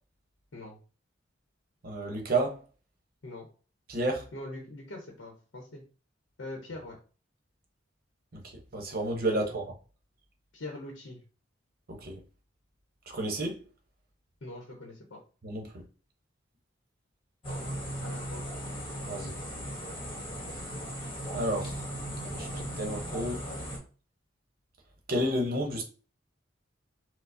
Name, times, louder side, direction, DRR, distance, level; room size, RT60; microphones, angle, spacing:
voice 1, 1.8-2.6 3.9-4.3 8.7-9.7 11.9-12.2 13.1-13.6 15.4-15.6 19.1-19.3 21.3-21.8 22.2-23.4 25.1-25.8, right 1 dB, 55° right, 0.8 m, -31 dB
voice 2, 4.3-5.8 6.4-7.0 9.3-9.5 10.5-11.2 14.4-15.2 18.0-18.4, left 2 dB, 80° left, 0.7 m, -42 dB
sound 1, 17.4-23.8, equal, 30° left, 1.2 m, -37 dB
4.6 x 2.0 x 2.6 m
head